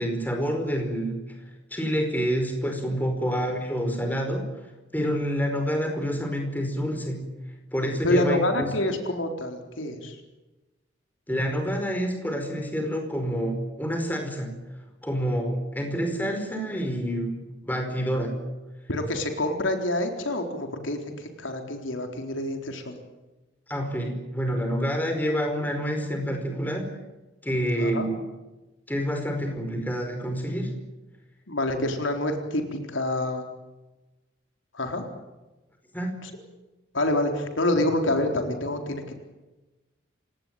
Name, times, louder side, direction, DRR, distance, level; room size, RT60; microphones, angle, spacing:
voice 1, 0.0-1.4 1.7-4.6 4.9-7.3 7.7-8.7 11.3-14.5 15.0-18.4 23.7-26.9 27.4-28.1 28.9-30.8 35.9-36.2, equal, 10° left, 4 dB, 4.9 m, -28 dB
voice 2, 8.0-10.2 18.9-23.0 27.8-28.1 31.5-33.4 34.7-35.0 36.2-36.3 36.9-39.1, left 1 dB, 85° left, 4 dB, 4.1 m, -27 dB
28.0 x 18.5 x 9.1 m, 1.1 s
head